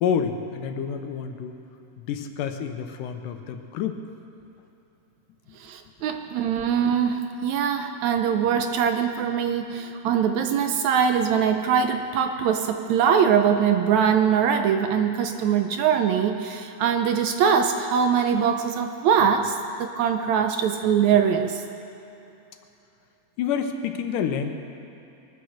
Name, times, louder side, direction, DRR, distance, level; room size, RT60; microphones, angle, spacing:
voice 1, 0.0-1.6 2.0-4.0 23.4-24.5, left 7 dB, 90° left, 6 dB, 2.5 m, -28 dB
voice 2, 5.6-21.6, right 7 dB, 75° right, 6 dB, 1.8 m, -22 dB
23.0 x 9.5 x 6.5 m, 2.8 s
omnidirectional pair, 3.7 m